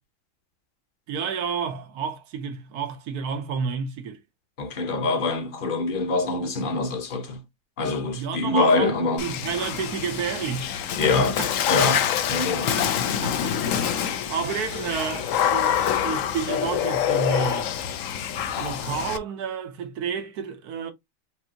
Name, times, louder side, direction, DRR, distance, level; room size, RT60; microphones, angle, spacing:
voice 1, 1.1-4.2 8.1-11.5 12.8-12.9 13.2-13.8 14.3-17.7 18.6-20.9, right 6 dB, 85° right, 1.4 m, -30 dB
voice 2, 4.6-7.4 7.8-9.3 11.0-11.3 11.7-12.0 12.3-12.7, left 3 dB, 40° left, 1.0 m, -24 dB
Water / Splash splatter, 9.2-19.2, left 9 dB, 65° left, 0.9 m, -26 dB
5.4 x 2.7 x 2.8 m
omnidirectional pair, 1.6 m